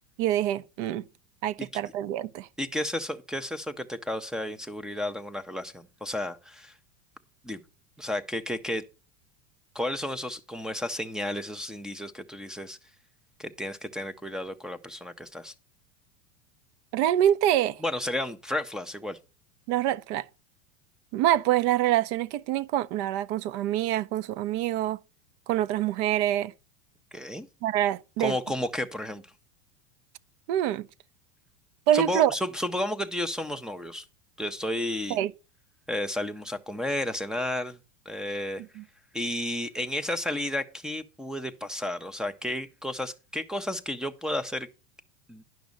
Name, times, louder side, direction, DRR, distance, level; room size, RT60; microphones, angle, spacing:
voice 1, 0.2-1.0 1.4-2.5 16.9-17.8 19.7-20.2 21.1-25.0 25.5-26.5 27.6-28.3 30.5-30.9 31.9-32.3 35.1-35.3 38.8-38.9, right 12 dB, 50° right, 0.7 m, -25 dB
voice 2, 2.6-6.7 7.4-7.6 8.0-8.8 9.7-12.8 13.4-15.5 17.8-19.2 27.1-27.5 28.2-29.2 31.9-34.0 34.4-35.2 35.9-37.8 38.1-38.6 39.1-44.7 45.3-45.4, left 1 dB, ahead, 0.5 m, -32 dB
10.5 x 6.0 x 5.1 m
supercardioid pair, 140°, 42 cm